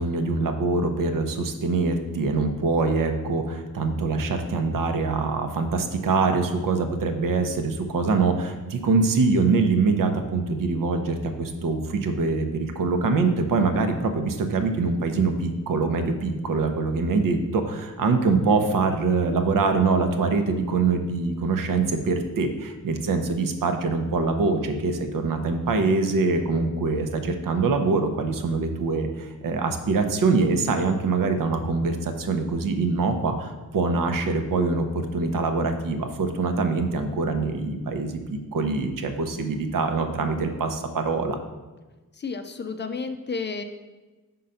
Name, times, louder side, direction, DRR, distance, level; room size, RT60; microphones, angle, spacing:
voice 1, 0.0-41.4, right 4 dB, 75° right, 6 dB, 0.8 m, -24 dB
voice 2, 42.2-43.6, left 4 dB, 35° left, 7 dB, 0.4 m, -31 dB
5.5 x 3.8 x 5.5 m, 1.2 s
wide cardioid pair, 110°, 33 cm